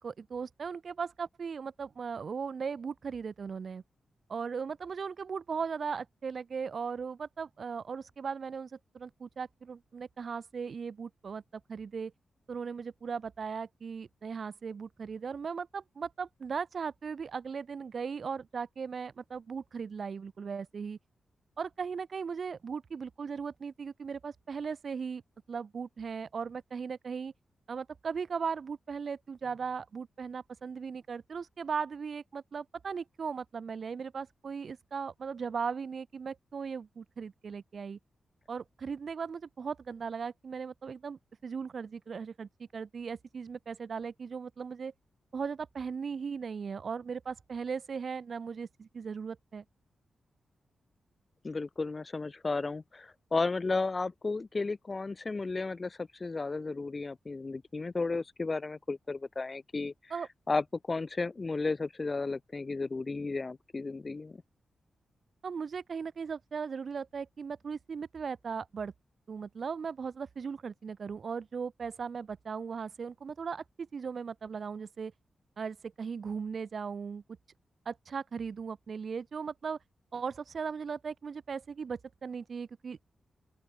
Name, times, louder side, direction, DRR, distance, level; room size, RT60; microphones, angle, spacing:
voice 1, 0.0-3.8 4.3-11.4 11.7-12.1 12.5-21.0 21.6-25.2 25.5-27.3 27.7-38.0 38.5-44.9 45.3-49.6 60.1-60.3 65.4-68.9 69.3-75.1 75.6-77.2 77.8-79.8 80.1-83.1, right 6 dB, 55° right, 1.5 m, -38 dB
voice 2, 51.4-59.9 60.5-64.4, left 3 dB, 35° left, 0.8 m, -33 dB
open air
cardioid pair, 95°, 0 cm